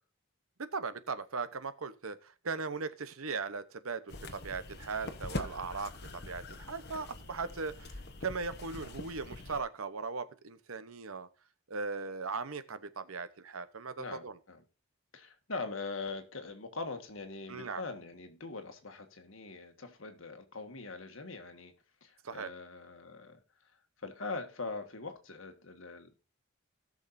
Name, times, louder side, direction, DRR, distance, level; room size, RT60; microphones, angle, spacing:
voice 1, 0.6-7.9 8.2-11.3 11.7-14.4 17.5-17.8 22.2-22.5, right 4 dB, 85° right, 0.9 m, -38 dB
sound 1, 4.1-9.6, left 2 dB, 50° left, 1.2 m, -44 dB
voice 2, 14.0-14.6 15.1-21.7 22.0-23.4 24.0-26.1, left 3 dB, 70° left, 1.7 m, -42 dB
18.0 x 6.4 x 2.7 m
head